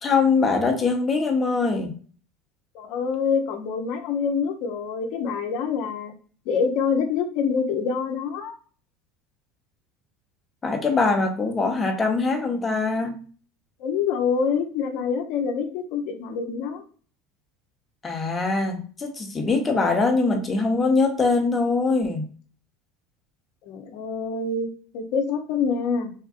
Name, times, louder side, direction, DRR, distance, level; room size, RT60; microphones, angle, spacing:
voice 1, 0.0-1.9 10.6-13.2 18.0-22.2, left 4 dB, 25° left, 3 dB, 0.9 m, -22 dB
voice 2, 2.7-6.1 6.5-8.6 13.8-16.8 23.7-24.7 24.9-26.1, left 5 dB, 60° left, 5 dB, 0.7 m, -26 dB
3.6 x 2.5 x 2.4 m, 0.41 s
hypercardioid pair, 80°, 0 cm